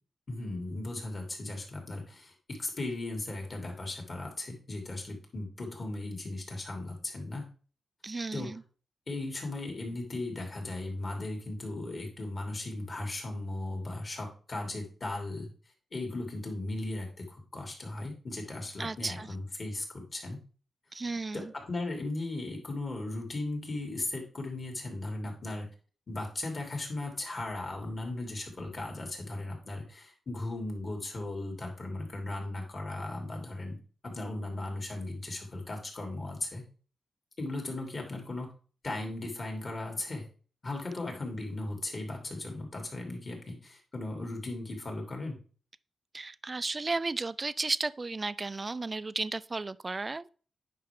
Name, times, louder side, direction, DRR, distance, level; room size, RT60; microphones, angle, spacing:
voice 1, 0.3-7.5 8.3-8.5 9.1-15.5 15.9-20.4 21.3-25.7 26.1-33.8 34.0-36.6 37.4-38.5 38.8-40.3 40.6-45.4, left 2 dB, 40° left, 2.8 m, -37 dB
voice 2, 8.0-8.6 18.8-19.3 20.9-21.5 46.1-50.3, right 3 dB, 30° right, 0.4 m, -34 dB
9.6 x 5.8 x 3.6 m
wide cardioid pair, 120°, 0 cm